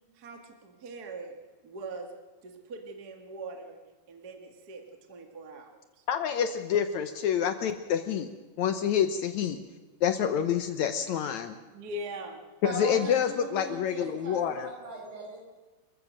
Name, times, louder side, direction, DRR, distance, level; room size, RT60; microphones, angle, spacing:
voice 1, 0.1-1.4 1.6-2.1 2.4-3.8 4.1-4.8 5.1-6.0 11.7-12.4 12.7-13.0, right 2 dB, 35° right, 4 dB, 1.8 m, -41 dB
voice 2, 6.1-8.3 8.6-9.6 10.0-11.5 12.7-14.7, left 8 dB, 70° left, 9 dB, 1.9 m, -27 dB
voice 3, 12.6-15.4, right 2 dB, 65° right, -1 dB, 7.5 m, -39 dB
28.5 x 15.0 x 6.4 m, 1.2 s
omnidirectional pair, 3.9 m